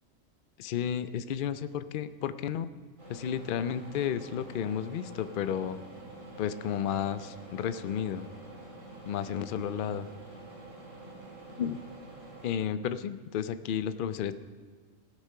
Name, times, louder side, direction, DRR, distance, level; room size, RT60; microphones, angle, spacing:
voice 1, 0.6-2.7 3.1-5.8 6.4-8.3 9.1-10.1 11.6-11.8 12.4-14.3, left 9 dB, 60° left, 12 dB, 0.6 m, -32 dB
sound 1, 3.0-12.5, right 2 dB, 90° right, 4.1 m, -47 dB
15.5 x 8.3 x 5.6 m, 1.5 s
omnidirectional pair, 1.3 m